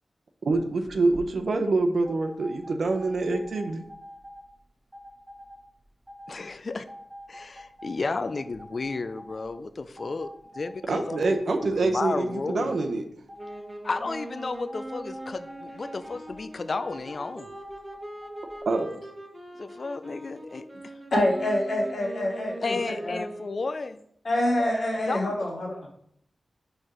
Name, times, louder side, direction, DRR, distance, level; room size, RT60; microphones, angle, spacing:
voice 1, 0.5-3.8 10.9-13.0 18.7-18.9, right 3 dB, 75° right, 0.7 m, -25 dB
sound 1, 0.9-1.2 2.1-4.4 4.9-5.6 6.1-6.4 6.9-9.5 10.0-11.8 12.1-12.8 13.3-13.6 14.1-16.4 16.8-18.6, equal, 15° right, 1.5 m, -45 dB
voice 2, 6.3-6.8 7.3-12.7 13.8-17.5 19.6-20.7 22.6-24.0 25.1-25.3, left 3 dB, 55° left, 0.3 m, -33 dB
sound 2, 13.4-23.8, right 1 dB, 30° right, 1.1 m, -42 dB
voice 3, 21.1-23.2 24.2-25.9, left 1 dB, 75° left, 2.3 m, -26 dB
4.6 x 4.4 x 4.9 m
cardioid pair, 55°, 0 cm